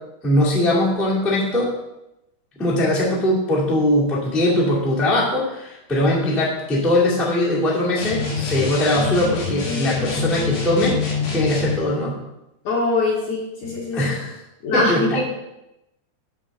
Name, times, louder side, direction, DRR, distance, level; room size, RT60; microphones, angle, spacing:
voice 1, 0.2-1.7 2.6-11.0 11.3-12.1 13.9-14.3 14.7-15.2, left 1 dB, ahead, -6 dB, 0.6 m, -20 dB
sound 1, 8.0-11.8, left 5 dB, 85° left, 4.1 m, -26 dB
voice 2, 12.7-14.0 14.6-15.2, left 2 dB, 60° left, -3 dB, 2.2 m, -23 dB
8.6 x 3.7 x 6.5 m, 0.90 s
omnidirectional pair, 4.7 m